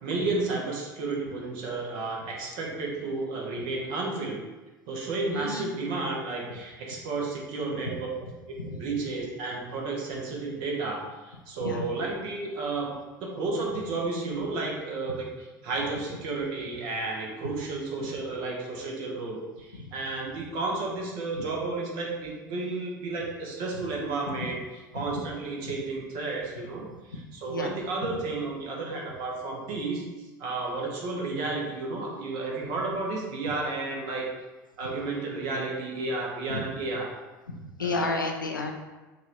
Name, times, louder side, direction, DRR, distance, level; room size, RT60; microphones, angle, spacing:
voice 1, 0.0-4.4 4.9-8.1 8.6-30.0 30.4-34.3 34.8-37.1 37.8-38.1, right 3 dB, 55° right, -2 dB, 1.2 m, -32 dB
voice 2, 5.3-5.7 8.6-8.9 11.6-11.8 19.8-19.9 24.9-25.0 25.6-25.7 27.5-27.7 36.5-36.6 37.5-38.7, left 3 dB, 85° left, 3 dB, 0.5 m, -31 dB
6.0 x 2.7 x 3.0 m, 1.2 s
figure-of-eight pair, 70°, 10 cm